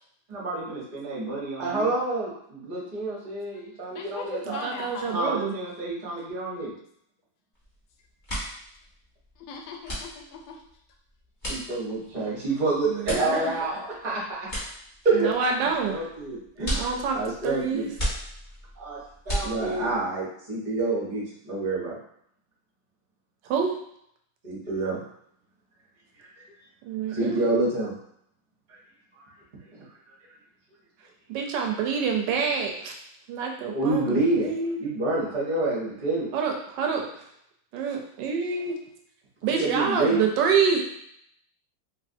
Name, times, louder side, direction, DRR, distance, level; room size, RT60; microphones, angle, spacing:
voice 1, 0.3-4.6 5.1-6.7 11.5-14.5 15.0-15.3 15.9-17.9 18.8-19.0 19.3-22.0 24.4-25.0 26.2-26.3 27.1-27.9 28.7-28.8 33.7-34.5 34.8-36.3 39.4-40.3, right 2 dB, 35° right, -5 dB, 0.7 m, -28 dB
voice 2, 3.9-5.3 9.4-10.6, left 5 dB, 80° left, 2 dB, 1.3 m, -39 dB
voice 3, 4.5-5.5 12.9-13.5 15.1-16.0 16.7-17.2 17.4-17.9 23.5-23.7 26.9-27.4 31.3-32.9 33.3-34.8 36.3-37.1 37.7-38.7 39.4-40.8, right 6 dB, 75° right, 2 dB, 1.1 m, -27 dB
sound 1, 7.5-7.8 8.1-20.0, equal, 25° left, 1.2 m, -35 dB
3.2 x 3.1 x 2.6 m, 0.71 s
omnidirectional pair, 2.1 m